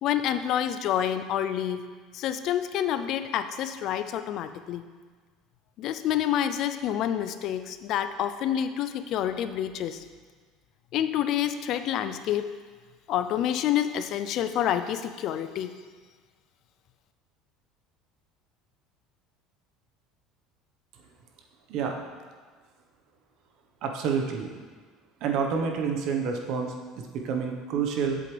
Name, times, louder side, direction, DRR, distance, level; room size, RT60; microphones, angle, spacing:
voice 1, 0.0-4.9 5.8-10.0 10.9-12.5 13.1-15.7, left 10 dB, 55° left, 10 dB, 0.4 m, -28 dB
voice 2, 23.8-24.5 25.2-28.2, right 6 dB, 60° right, 2 dB, 1.1 m, -28 dB
7.9 x 7.7 x 3.4 m, 1.5 s
supercardioid pair, 125°, 0 cm